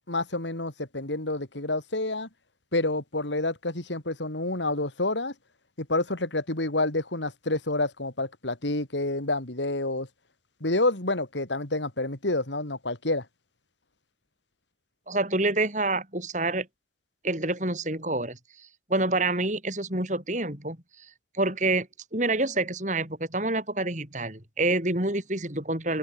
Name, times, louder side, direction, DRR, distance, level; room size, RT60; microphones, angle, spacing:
voice 1, 0.1-2.3 2.7-5.3 5.8-10.1 10.6-13.2, left 2 dB, 85° left, 3.5 m, -28 dB
voice 2, 15.1-16.7 17.2-18.4 18.9-20.8 21.3-26.0, right 2 dB, 40° right, 6.4 m, -27 dB
head